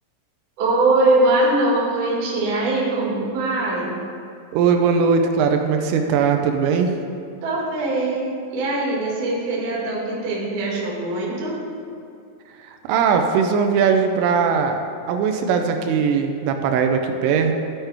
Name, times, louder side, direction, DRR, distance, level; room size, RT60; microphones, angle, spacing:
voice 1, 0.6-4.0 7.4-11.6, right 2 dB, 55° right, -5 dB, 2.6 m, -22 dB
voice 2, 4.5-6.9 12.7-14.8 15.1-17.6, right 6 dB, 90° right, 5 dB, 3.2 m, -19 dB
13.5 x 5.7 x 3.4 m, 2.5 s
omnidirectional pair, 5.7 m